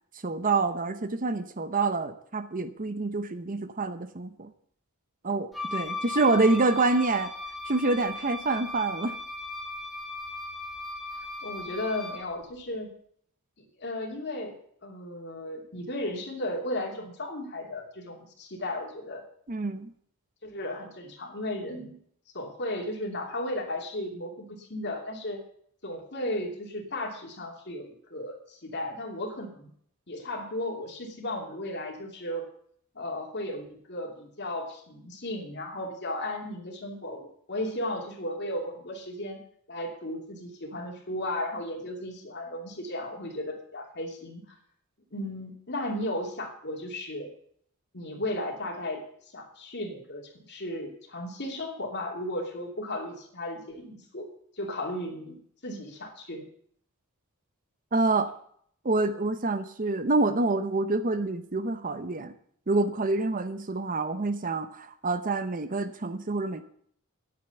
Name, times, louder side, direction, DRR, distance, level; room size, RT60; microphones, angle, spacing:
voice 1, 0.2-4.5 5.2-7.3 7.7-9.2 19.5-19.9 57.9-58.3 58.8-62.3 62.7-66.6, right 3 dB, 40° right, 11 dB, 0.8 m, -27 dB
Wind instrument woodwind instrument, 5.5-12.3, left 3 dB, ahead, 1.7 m, -37 dB
voice 2, 11.1-12.9 13.8-19.2 20.4-22.0 22.3-25.4 25.8-29.7 30.1-32.5 32.9-39.4 39.7-44.4 45.1-47.3 47.9-49.0 49.3-54.3 54.5-56.5, left 1 dB, 50° left, 2 dB, 2.7 m, -35 dB
10.5 x 8.6 x 6.9 m, 0.63 s
head